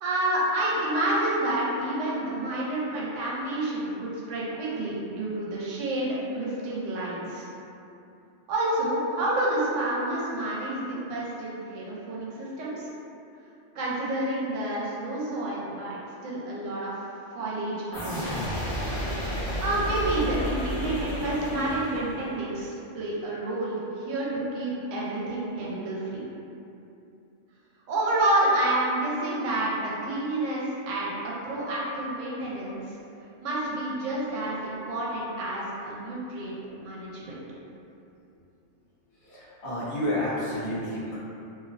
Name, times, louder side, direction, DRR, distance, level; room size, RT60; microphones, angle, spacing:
voice 1, 0.0-7.5 8.5-12.9 13.7-16.9 17.3-18.2 19.6-26.2 27.9-33.0 33.4-37.3, right 1 dB, 85° right, -6 dB, 0.9 m, -29 dB
sound 1, 17.9-22.6, equal, 50° left, 0.6 m, -32 dB
voice 2, 39.2-41.2, left 1 dB, 70° left, -8 dB, 1.0 m, -30 dB
2.6 x 2.0 x 2.4 m, 2.7 s
omnidirectional pair, 1.3 m